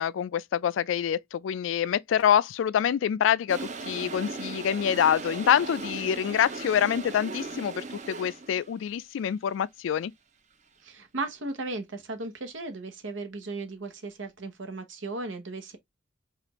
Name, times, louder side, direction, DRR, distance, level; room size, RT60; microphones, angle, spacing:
voice 1, 0.0-10.1, left 9 dB, 90° left, 0.3 m, -26 dB
Toilet flush, 3.5-8.7, right 3 dB, 40° right, 0.6 m, -38 dB
voice 2, 10.8-15.8, right 2 dB, 85° right, 1.0 m, -36 dB
4.9 x 2.5 x 2.9 m
head